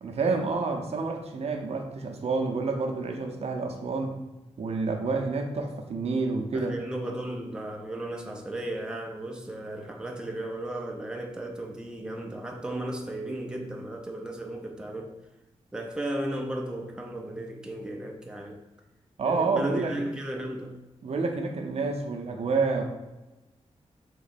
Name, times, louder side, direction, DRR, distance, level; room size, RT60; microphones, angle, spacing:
voice 1, 0.0-4.2 4.6-6.7 19.2-19.9 21.0-22.8, right 4 dB, 65° right, 3 dB, 0.6 m, -28 dB
voice 2, 6.5-15.2 15.7-18.6 19.3-20.7, right 1 dB, 5° right, 1 dB, 0.5 m, -35 dB
3.7 x 3.0 x 4.1 m, 1.0 s
wide cardioid pair, 135°, 11 cm